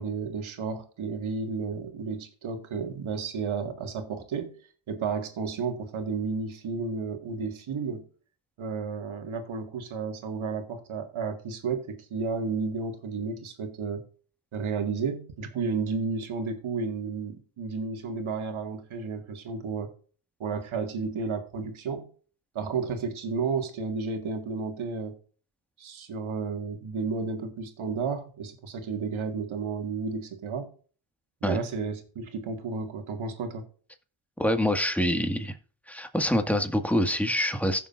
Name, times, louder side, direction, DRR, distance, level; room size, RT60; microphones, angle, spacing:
voice 1, 0.0-4.6 4.9-8.0 8.6-14.0 14.5-19.9 20.4-22.1 22.6-25.2 25.8-30.7 31.4-33.6, right 5 dB, 85° right, 2.0 m, -32 dB
voice 2, 34.4-35.6 35.9-37.9, equal, 5° left, 1.8 m, -25 dB
16.0 x 6.7 x 2.6 m
cardioid pair, 60°, 47 cm